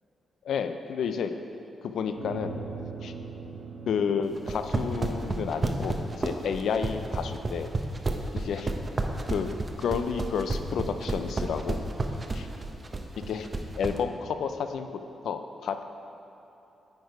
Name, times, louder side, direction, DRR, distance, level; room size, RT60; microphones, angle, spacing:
voice 1, 0.4-1.3 1.8-2.6 3.0-3.1 3.9-7.7 8.3-8.7 9.3-9.5 9.8-12.5 13.2-13.5 13.8-15.8, left 6 dB, 80° left, 8 dB, 0.4 m, -31 dB
sound 1, 2.2-7.0, right 4 dB, 90° right, 1.1 m, -42 dB
sound 2, 4.4-14.0, right 3 dB, 30° right, 0.6 m, -30 dB
9.2 x 4.6 x 4.7 m, 2.9 s
cardioid pair, 95°, 0 cm